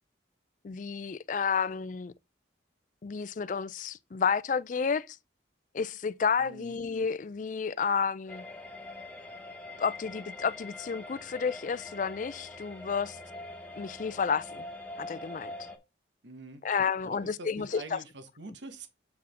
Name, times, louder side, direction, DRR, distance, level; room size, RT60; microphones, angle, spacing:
voice 1, 0.6-2.1 3.0-5.2 5.7-8.4 9.8-13.2 13.8-14.7 15.0-15.5 16.6-18.0, left 6 dB, 40° left, 0.4 m, -31 dB
voice 2, 6.4-6.8 16.2-16.6 17.0-18.9, right 2 dB, 70° right, 1.1 m, -45 dB
sound 1, 8.3-15.8, left 2 dB, 5° left, 0.9 m, -44 dB
7.3 x 4.8 x 3.5 m
head